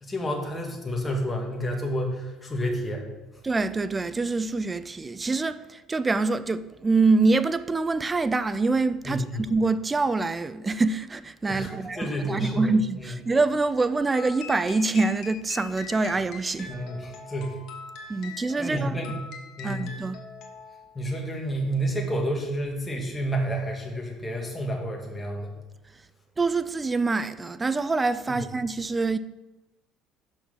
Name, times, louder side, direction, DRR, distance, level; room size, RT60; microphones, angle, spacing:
voice 1, 0.0-3.1 9.1-9.5 11.5-13.1 16.7-17.6 18.6-19.2 19.6-20.0 21.0-25.5 28.3-28.4, right 1 dB, 20° left, 2.0 m, -30 dB
voice 2, 3.4-16.8 18.1-18.9 19.6-20.2 26.4-29.2, right 3 dB, 20° right, 0.4 m, -25 dB
sound 1, 14.1-21.0, left 5 dB, 65° left, 1.2 m, -43 dB
6.2 x 5.9 x 5.6 m
supercardioid pair, 80°, 0 cm